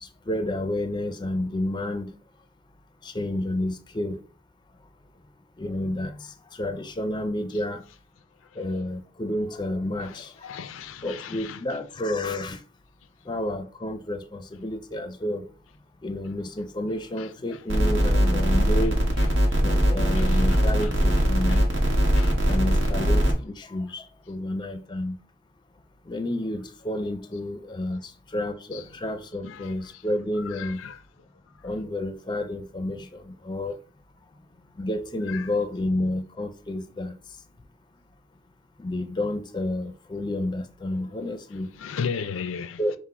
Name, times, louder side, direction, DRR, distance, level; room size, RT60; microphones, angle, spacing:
voice 1, 0.0-2.1 3.0-4.2 5.6-7.8 8.6-10.3 11.0-12.6 13.3-15.5 16.0-19.0 19.6-21.6 22.5-25.2 26.1-30.8 31.6-33.8 34.8-37.2 38.8-41.7 42.8-43.0, left 1 dB, 25° left, 0.4 m, -30 dB
voice 2, 10.4-11.6 20.2-20.6 21.5-21.6 22.2-22.4 28.7-28.8 29.4-29.7 30.6-31.0 35.3-35.5 41.8-43.0, left 6 dB, 85° left, 0.4 m, -35 dB
sound 1, 17.7-23.3, equal, 80° right, 1.1 m, -21 dB
5.9 x 2.1 x 4.2 m
head